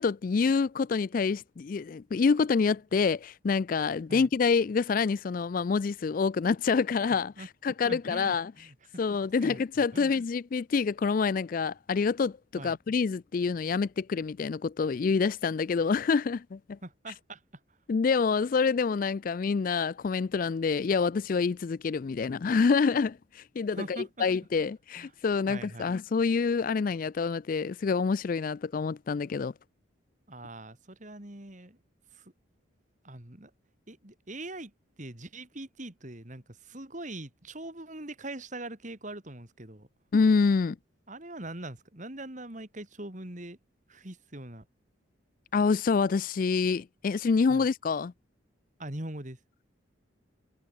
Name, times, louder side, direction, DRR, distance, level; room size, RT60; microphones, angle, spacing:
voice 1, 0.0-8.5 9.0-16.8 17.9-29.5 40.1-40.8 45.5-48.1, left 5 dB, 45° left, 0.3 m, -27 dB
voice 2, 7.9-8.7 9.4-9.6 9.9-10.1 12.6-12.8 16.8-17.4 23.7-24.3 25.0-25.1 25.5-25.9 30.3-31.8 32.1-32.3 33.0-33.5 33.9-34.7 35.0-39.9 41.1-43.6 43.9-44.6 47.5-47.7 48.8-49.4, right 1 dB, 40° right, 2.8 m, -42 dB
head